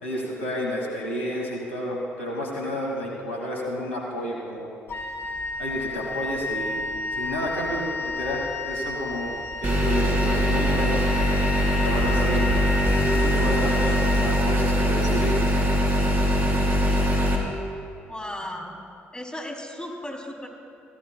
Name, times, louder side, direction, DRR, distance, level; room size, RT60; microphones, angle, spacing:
voice 1, 0.0-4.7 5.6-6.8 7.1-11.4 11.8-12.5 13.1-15.7, equal, 85° left, -2 dB, 2.3 m, -30 dB
Wind instrument woodwind instrument, 4.9-15.0, left 3 dB, 40° left, 1.9 m, -32 dB
sound 1, 9.6-17.4, equal, 35° right, 3.6 m, -22 dB
voice 2, 18.1-18.8 19.1-20.5, left 1 dB, 15° left, 0 dB, 3.3 m, -35 dB
21.0 x 16.5 x 2.3 m, 2.5 s
figure-of-eight pair, 45°, 7 cm